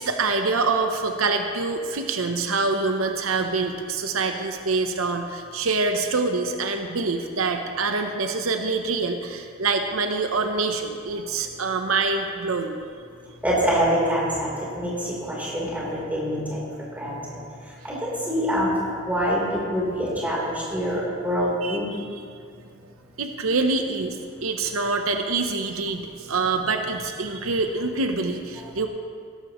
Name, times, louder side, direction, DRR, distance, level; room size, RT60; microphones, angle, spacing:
voice 1, 0.0-12.8 21.6-22.2 23.2-28.9, right 3 dB, 85° right, 5 dB, 0.8 m, -25 dB
voice 2, 13.4-16.6 16.9-17.4 17.8-18.8 19.0-21.9, equal, 10° right, -6 dB, 3.6 m, -25 dB
16.0 x 13.5 x 3.1 m, 2.2 s
head